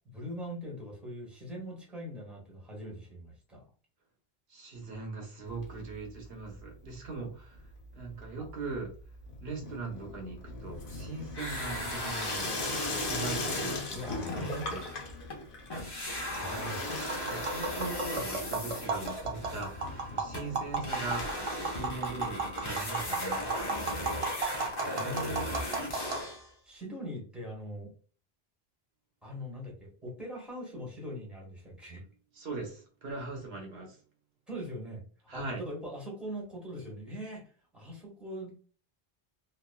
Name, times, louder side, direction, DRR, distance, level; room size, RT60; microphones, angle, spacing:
voice 1, 0.1-3.6 13.9-14.5 16.4-16.9 25.0-25.5 26.6-27.9 29.2-32.0 34.5-35.0 35.3-37.4 37.7-38.5, equal, ahead, -3 dB, 1.2 m, -41 dB
voice 2, 4.5-8.9 9.4-12.5 13.0-14.9 17.3-21.3 21.7-23.7 32.3-34.0 35.3-35.6, right 3 dB, 80° right, 1 dB, 1.0 m, -40 dB
Water tap faucet / Sink (filling or washing), 5.5-6.3 6.5-7.1 7.4-22.6 23.0-23.1 23.3-23.4 23.6-23.7 24.7-24.8, left 3 dB, 60° left, 0.9 m, -41 dB
sound 1, 11.3-15.4 15.7-26.5, left 1 dB, 30° left, 0.6 m, -37 dB
Tap, 17.0-26.2, right 3 dB, 45° right, 0.4 m, -35 dB
3.1 x 2.3 x 2.2 m, 0.39 s
omnidirectional pair, 1.1 m